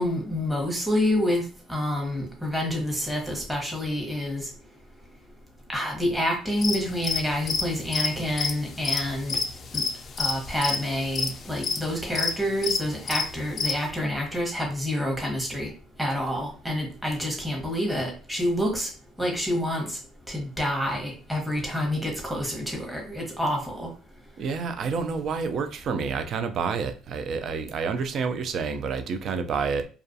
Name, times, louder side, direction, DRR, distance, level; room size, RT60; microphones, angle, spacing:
voice 1, 0.0-1.4 1.7-4.5 5.7-9.4 9.7-9.8 10.2-15.7 16.0-18.9 19.2-20.0 20.3-23.9, left 1 dB, 10° right, 0 dB, 0.9 m, -28 dB
sound 1, 6.6-13.8, left 5 dB, 45° left, 0.3 m, -28 dB
voice 2, 24.4-29.9, right 5 dB, 55° right, 9 dB, 0.3 m, -29 dB
2.3 x 2.3 x 2.6 m, 0.37 s
supercardioid pair, 90°, 0 cm